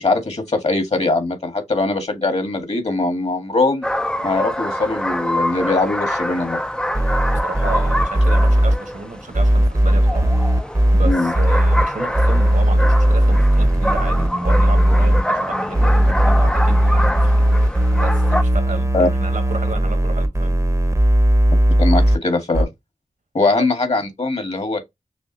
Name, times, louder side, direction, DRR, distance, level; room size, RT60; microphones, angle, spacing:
voice 1, 0.0-3.9 4.2-6.6 11.0-11.3 18.9-19.1 21.8-22.7 23.3-24.8, left 3 dB, 50° left, 1.8 m, -21 dB
sound 1, 3.8-18.4, equal, 5° left, 0.5 m, -25 dB
sound 2, 6.9-8.8 9.3-11.8 12.1-15.2 15.7-22.2 22.5-22.6, right 1 dB, 20° right, 0.8 m, -16 dB
voice 2, 7.4-20.6 23.6-23.7, right 3 dB, 70° right, 1.3 m, -32 dB
6.1 x 2.4 x 2.9 m
wide cardioid pair, 65°, 14 cm